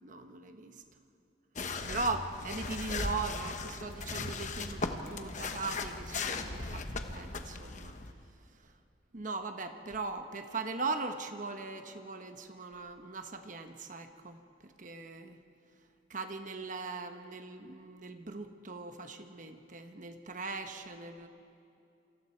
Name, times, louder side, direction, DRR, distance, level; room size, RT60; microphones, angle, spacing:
voice 1, 0.0-0.8 1.9-7.9 9.1-14.4 14.6-15.4 16.1-21.3, right 3 dB, 45° right, 6 dB, 1.2 m, -39 dB
sound 1, 1.6-8.1, left 3 dB, 40° left, 1.1 m, -38 dB
27.5 x 25.5 x 4.6 m, 2.6 s
head